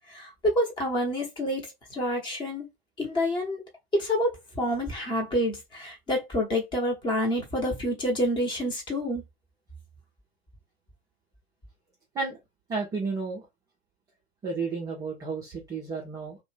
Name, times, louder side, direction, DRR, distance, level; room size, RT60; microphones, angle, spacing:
voice 1, 0.1-1.7 1.9-2.7 3.0-3.6 3.9-9.2, equal, 15° left, 0.9 m, -28 dB
voice 2, 12.7-13.5 14.4-16.4, right 4 dB, 10° right, 0.5 m, -32 dB
2.4 x 2.1 x 3.3 m
figure-of-eight pair, 105°, 32 cm